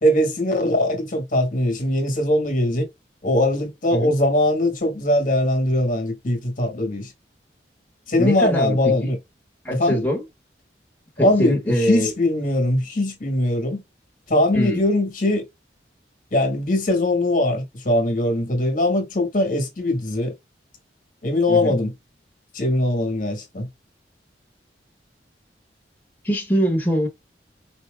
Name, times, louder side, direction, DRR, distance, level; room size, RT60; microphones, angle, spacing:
voice 1, 0.0-2.9 3.2-7.1 8.1-9.2 9.7-10.0 11.2-13.8 14.3-15.5 16.3-20.3 21.2-21.9 22.5-23.7, left 1 dB, 45° left, 1.5 m, -21 dB
voice 2, 8.2-9.1 9.6-10.2 11.2-12.1 14.5-14.8 21.5-21.7 26.2-27.1, equal, 10° left, 1.2 m, -23 dB
4.6 x 2.8 x 2.4 m
head